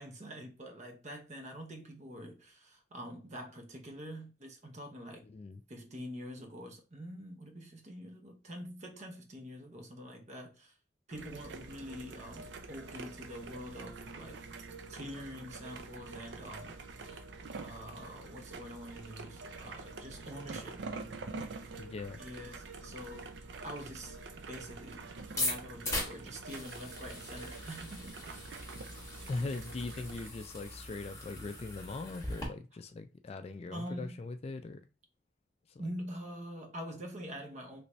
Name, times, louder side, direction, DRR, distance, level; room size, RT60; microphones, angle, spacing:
voice 1, 0.0-5.2 5.7-10.7 11.1-14.4 14.9-16.7 17.0-17.2 17.6-20.8 22.2-24.2 24.5-25.0 25.3-28.2 33.7-34.2 35.8-37.8, equal, 40° right, 0.8 m, -45 dB
voice 2, 5.2-5.6 21.8-22.2 29.3-34.9 35.7-35.8, left 3 dB, 35° left, 0.3 m, -40 dB
sound 1, 11.1-30.3, right 3 dB, 75° right, 0.5 m, -46 dB
sound 2, 25.2-32.5, left 1 dB, 15° left, 1.0 m, -40 dB
3.3 x 2.7 x 3.0 m
head